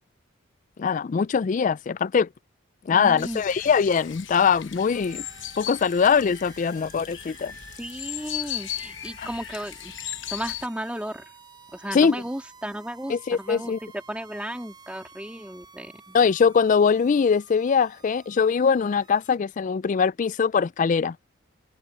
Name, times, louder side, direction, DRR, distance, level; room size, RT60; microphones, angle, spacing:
voice 1, 0.8-2.3 2.9-5.3 5.6-7.5 9.2-9.3 11.9-12.2 13.1-13.8 16.1-21.2, left 6 dB, 40° left, 0.3 m, -22 dB
voice 2, 2.9-3.4 7.8-9.9 10.3-11.2 11.7-16.2, right 1 dB, 5° right, 2.6 m, -34 dB
sound 1, 3.2-10.7, left 12 dB, 60° left, 1.0 m, -37 dB
sound 2, 4.9-19.4, right 4 dB, 20° right, 3.8 m, -51 dB
head